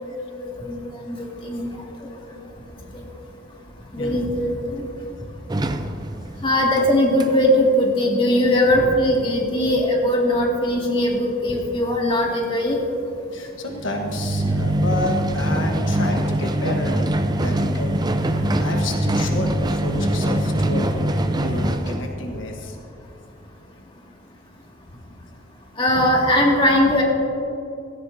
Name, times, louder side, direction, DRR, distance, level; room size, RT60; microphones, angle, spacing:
voice 1, 0.4-0.8 1.1-1.2 1.4-1.7 2.3-2.4 2.9-3.0 3.9-4.9 6.4-12.8 25.8-27.0, left 1 dB, 30° left, -2 dB, 2.2 m, -20 dB
sound 1, 5.5-6.9 7.2-7.3 13.7-22.1, right 1 dB, 20° right, 0.6 m, -23 dB
voice 2, 13.3-17.0 17.4-21.1 21.4-22.8, left 2 dB, 80° left, 2 dB, 1.3 m, -30 dB
17.0 x 14.5 x 2.8 m, 2.8 s
head